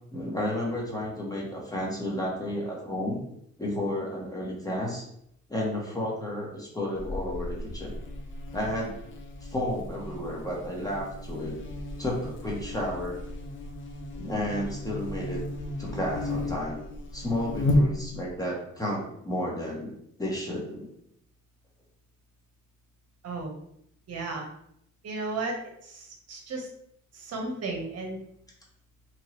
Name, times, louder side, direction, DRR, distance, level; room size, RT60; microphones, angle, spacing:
voice 1, 0.1-3.2 3.6-5.0 5.5-7.9 8.5-8.9 9.4-11.6 12.0-13.1 14.1-15.4 15.8-16.8 17.1-19.9 20.2-20.9, left 1 dB, 10° left, -3 dB, 1.0 m, -32 dB
Buzz, 7.0-18.4, left 1 dB, 40° left, 0.6 m, -33 dB
voice 2, 24.1-24.5 25.0-25.6 25.8-26.7 27.1-28.2, right 3 dB, 55° right, 1 dB, 0.8 m, -34 dB
3.0 x 2.6 x 3.0 m, 0.73 s
cardioid pair, 90°, 30 cm